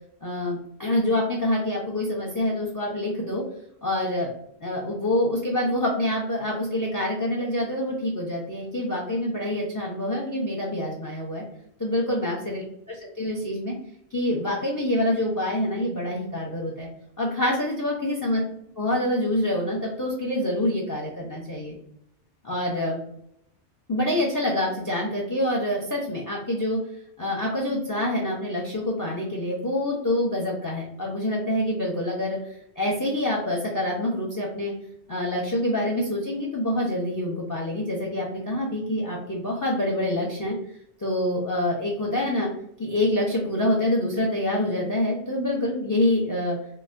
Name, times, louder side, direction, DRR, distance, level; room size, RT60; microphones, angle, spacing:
voice 1, 0.2-3.4 3.8-4.3 4.6-11.4 11.8-13.7 14.1-16.9 17.2-18.4 18.8-21.8 22.4-23.0 23.9-26.8 27.2-34.7 35.1-40.6 41.0-42.5 42.8-46.6, left 1 dB, 25° left, -2 dB, 0.5 m, -26 dB
3.9 x 2.8 x 2.5 m, 0.74 s
omnidirectional pair, 1.1 m